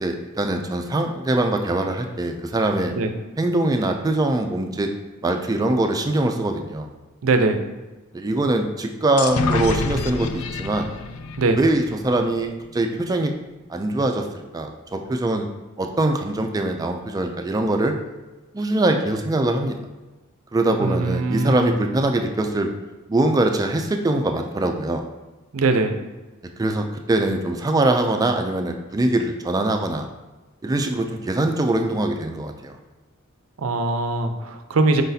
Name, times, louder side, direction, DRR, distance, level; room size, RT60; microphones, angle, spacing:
voice 1, 0.0-2.9 3.4-4.9 5.2-6.9 8.1-10.9 11.6-13.3 13.7-14.3 14.5-15.5 15.8-18.0 18.5-19.8 20.5-22.7 23.1-25.0 26.6-30.1 30.6-32.8, right 2 dB, 20° right, 4 dB, 0.3 m, -22 dB
voice 2, 7.2-7.6 11.4-11.6 20.8-21.7 25.5-25.9 33.6-35.0, right 3 dB, 75° right, 7 dB, 0.5 m, -21 dB
sound 1, 9.2-12.8, left 4 dB, 85° left, 0.4 m, -28 dB
5.0 x 3.9 x 2.7 m, 1.1 s
head